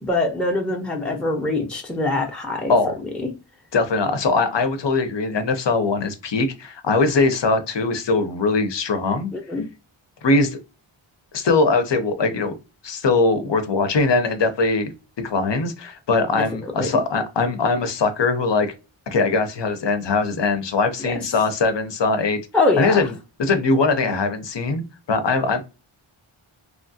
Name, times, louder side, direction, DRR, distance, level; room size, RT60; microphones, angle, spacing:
voice 1, 0.0-2.7 3.0-3.3 9.3-9.7 16.4-16.9 21.0-21.1 22.5-23.0, left 2 dB, ahead, 0.6 m, -23 dB
voice 2, 3.7-9.3 10.2-10.6 11.3-12.5 12.8-14.9 15.2-18.7 19.1-22.4 22.8-23.1 23.4-24.8 25.1-25.6, left 3 dB, 60° left, 0.7 m, -21 dB
3.1 x 2.3 x 2.6 m
wide cardioid pair, 55°, 50 cm